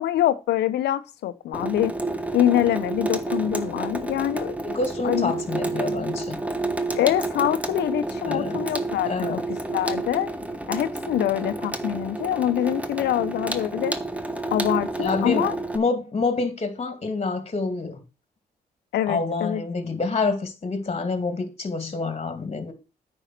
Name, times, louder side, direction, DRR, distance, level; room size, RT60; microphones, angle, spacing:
voice 1, 0.0-2.0 2.3-4.6 5.0-5.3 7.0-9.4 9.7-10.3 10.7-13.9 14.5-15.5 18.9-19.6, left 12 dB, 90° left, 0.9 m, -24 dB
Water tap faucet / Sink (filling or washing), 1.5-15.8, right 2 dB, 10° right, 1.3 m, -30 dB
voice 2, 4.6-6.4 8.3-8.6 9.0-9.5 15.0-18.0 19.1-22.7, left 3 dB, 35° left, 2.5 m, -27 dB
9.1 x 5.6 x 5.9 m
cardioid pair, 65°, 17 cm